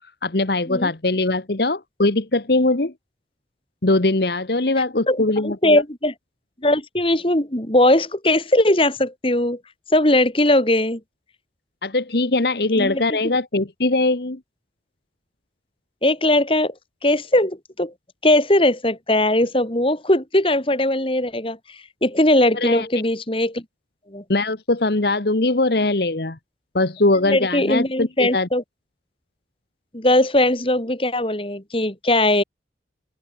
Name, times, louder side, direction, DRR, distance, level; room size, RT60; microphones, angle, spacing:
voice 1, 0.2-2.9 3.8-5.8 11.8-14.4 22.5-22.9 24.3-26.4 26.7-28.5, left 2 dB, 60° left, 1.3 m, -21 dB
voice 2, 5.1-6.1 6.6-9.6 9.9-11.0 12.8-13.0 16.0-16.7 17.0-17.9 18.2-21.6 22.0-23.6 24.1-24.2 27.2-28.6 29.9-32.4, left 1 dB, 30° left, 2.8 m, -19 dB
head